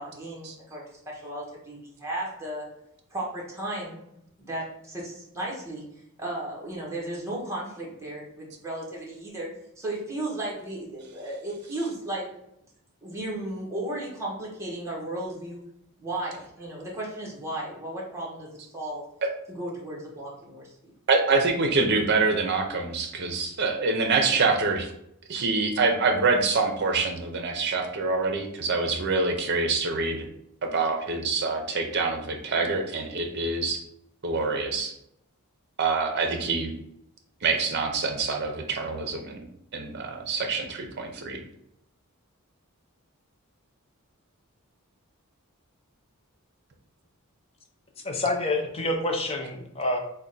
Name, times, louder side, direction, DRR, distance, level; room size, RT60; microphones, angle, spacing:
voice 1, 0.0-2.7 3.1-4.0 4.4-5.8 6.2-9.5 9.8-12.3 13.0-15.6 16.0-18.5 18.7-19.0 19.5-20.7, right 1 dB, 15° right, -4 dB, 0.9 m, -34 dB
voice 2, 21.1-24.9 25.3-30.2 30.6-33.8 34.2-34.9 35.8-36.7 37.4-39.4 39.7-41.4, right 3 dB, 50° right, 4 dB, 0.6 m, -25 dB
voice 3, 48.0-50.0, left 2 dB, 25° left, 3 dB, 0.5 m, -27 dB
3.5 x 2.2 x 3.9 m, 0.77 s
head